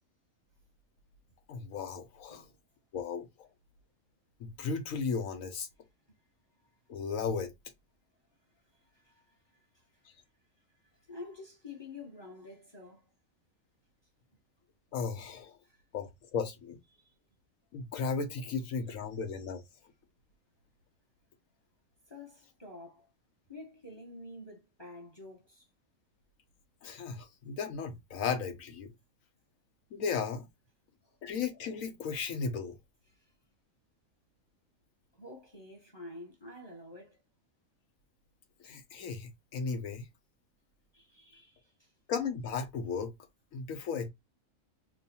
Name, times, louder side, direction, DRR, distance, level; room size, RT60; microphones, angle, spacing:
voice 1, 1.5-2.4 2.9-3.5 4.4-5.7 6.9-7.5 14.9-15.5 15.9-16.8 17.7-19.6 26.8-28.9 29.9-30.5 31.2-32.8 38.6-40.1 42.1-43.1 43.5-44.1, left 5 dB, 90° left, 1.2 m, -35 dB
voice 2, 8.7-10.1 11.1-13.1 15.6-15.8 16.9-17.1 22.1-23.1 23.5-25.7 31.0-31.2 33.1-33.3 35.1-37.2 40.9-41.9, left 2 dB, 20° left, 0.9 m, -49 dB
3.1 x 2.2 x 4.1 m
omnidirectional pair, 1.4 m